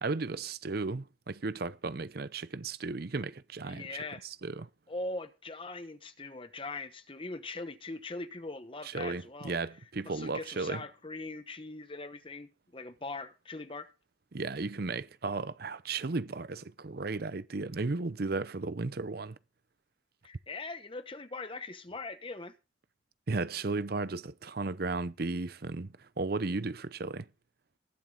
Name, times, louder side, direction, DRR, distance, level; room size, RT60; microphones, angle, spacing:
voice 1, 0.0-4.7 8.8-10.8 14.3-19.4 23.3-27.3, right 3 dB, 55° right, 0.6 m, -35 dB
voice 2, 3.6-4.3 4.9-9.5 10.0-13.9 20.2-22.5, left 3 dB, 25° left, 1.0 m, -41 dB
20.5 x 7.5 x 3.8 m
head